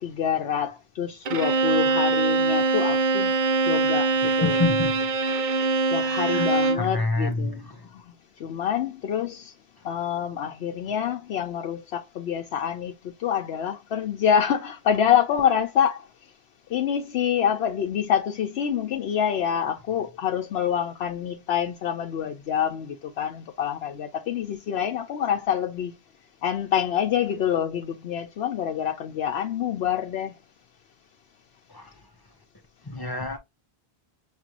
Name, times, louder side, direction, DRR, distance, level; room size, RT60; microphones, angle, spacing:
voice 1, 0.0-3.4 3.7-4.6 5.9-8.0 8.4-9.5 9.8-12.9 13.2-16.1 16.7-25.9 26.4-30.3, left 9 dB, 85° left, 0.9 m, -26 dB
Bowed string instrument, 1.3-6.9, right 3 dB, 55° right, 0.7 m, -23 dB
voice 2, 4.2-5.1 6.0-7.9 31.7-32.0 32.8-33.4, left 3 dB, 25° left, 0.6 m, -29 dB
5.9 x 2.5 x 2.8 m
omnidirectional pair, 1.0 m